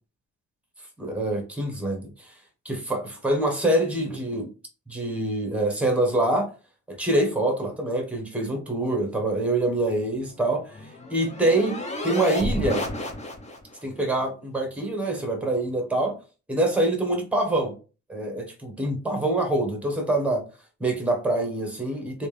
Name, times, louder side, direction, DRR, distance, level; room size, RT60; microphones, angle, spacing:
voice 1, 1.0-2.3 2.6-4.5 4.9-6.5 6.9-11.8 12.0-12.8 13.8-16.1 16.5-17.7 18.1-20.4 20.8-22.3, right 1 dB, 5° right, 1.2 m, -25 dB
sound 1, 10.2-13.8, left 1 dB, 20° left, 0.8 m, -31 dB
3.3 x 2.8 x 3.2 m
cardioid pair, 90°, 30 cm